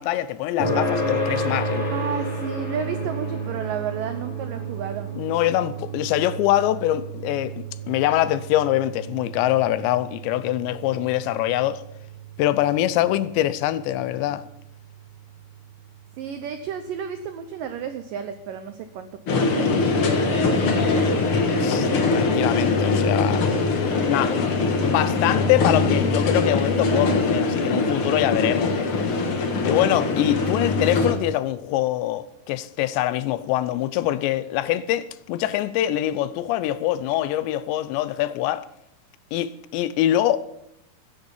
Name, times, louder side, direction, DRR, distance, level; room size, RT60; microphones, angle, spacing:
voice 1, 0.0-1.9 5.2-11.8 12.4-14.4 21.6-23.5 24.0-24.5 24.8-28.7 29.1-29.3 29.6-38.7 39.3-40.4, left 13 dB, 80° left, 2.9 m, -24 dB
sound 1, 0.6-15.5, right 1 dB, 30° left, 5.6 m, -32 dB
voice 2, 1.9-5.1 16.2-21.2, right 7 dB, 85° right, 1.9 m, -32 dB
sound 2, 19.3-31.1, left 3 dB, 65° left, 1.3 m, -22 dB
15.5 x 10.5 x 7.2 m
omnidirectional pair, 5.2 m